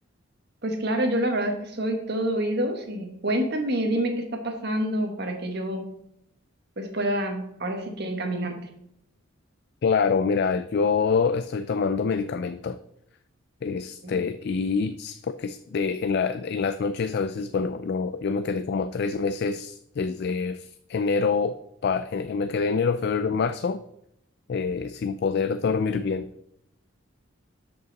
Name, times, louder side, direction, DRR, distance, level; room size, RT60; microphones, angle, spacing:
voice 1, 0.6-5.9 6.8-8.5 14.0-14.2, right 1 dB, 55° right, 4 dB, 1.5 m, -27 dB
voice 2, 9.8-12.8 13.6-21.6 21.8-23.8 24.5-26.3, left 5 dB, 55° left, 11 dB, 0.3 m, -26 dB
12.5 x 5.4 x 4.1 m, 0.78 s
head